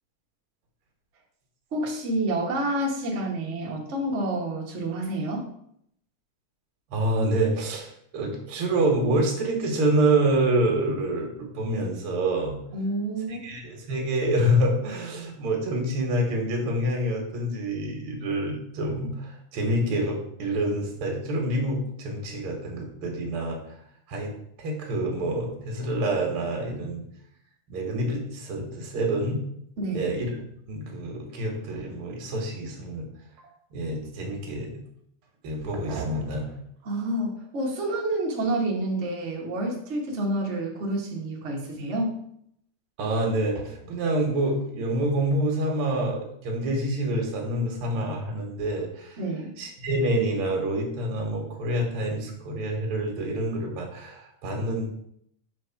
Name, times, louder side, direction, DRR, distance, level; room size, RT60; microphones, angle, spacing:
voice 1, 1.7-5.5 12.7-13.4 29.8-30.1 36.8-42.2 49.2-49.5, right 1 dB, 85° right, -1 dB, 0.6 m, -28 dB
voice 2, 6.9-12.6 13.3-23.8 24.1-24.3 24.6-27.0 27.7-29.4 29.9-30.3 30.7-33.1 33.7-34.7 35.4-36.5 43.0-49.2 49.6-54.9, right 1 dB, 55° right, 0 dB, 2.0 m, -27 dB
4.7 x 4.1 x 5.8 m, 0.70 s
omnidirectional pair, 3.3 m